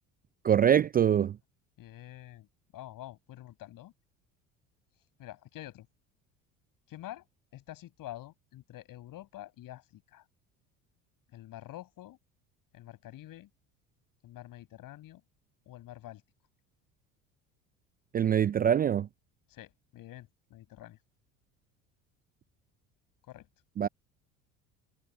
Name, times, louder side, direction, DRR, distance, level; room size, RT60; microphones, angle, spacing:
voice 1, 0.4-1.4 18.1-19.1 23.8-23.9, right 9 dB, 25° right, 0.4 m, -24 dB
voice 2, 1.8-2.5 2.7-3.9 5.2-5.9 6.9-7.3 7.5-10.2 11.3-12.2 12.7-13.5 14.2-15.2 15.7-16.2 19.5-21.0 23.3-23.5, left 14 dB, 55° left, 6.4 m, -47 dB
hypercardioid pair, 70°, 40 cm